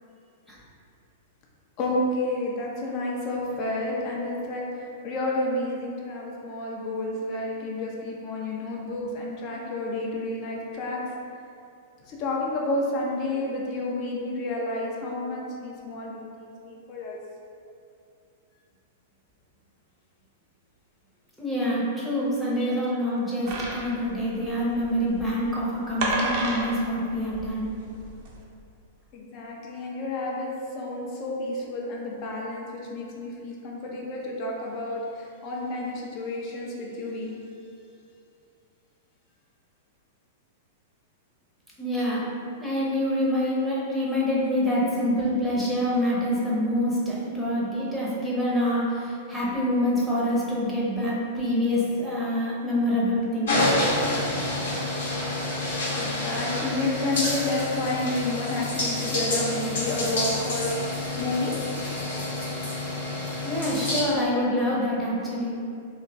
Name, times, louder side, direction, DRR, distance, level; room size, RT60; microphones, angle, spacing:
voice 1, 1.8-11.0 12.1-17.2 22.6-22.7 29.1-30.5 30.7-37.3 55.9-61.6, left 2 dB, 40° left, -2 dB, 0.6 m, -30 dB
voice 2, 21.4-27.7 41.8-42.3 42.6-53.8 63.4-65.7, equal, 5° left, -7 dB, 0.8 m, -26 dB
sound 1, 23.5-28.4, right 2 dB, 45° right, 0.6 m, -31 dB
sound 2, 53.5-64.0, left 1 dB, 65° left, 0.9 m, -28 dB
2.9 x 2.3 x 3.4 m, 2.5 s
figure-of-eight pair, 100°, 0 cm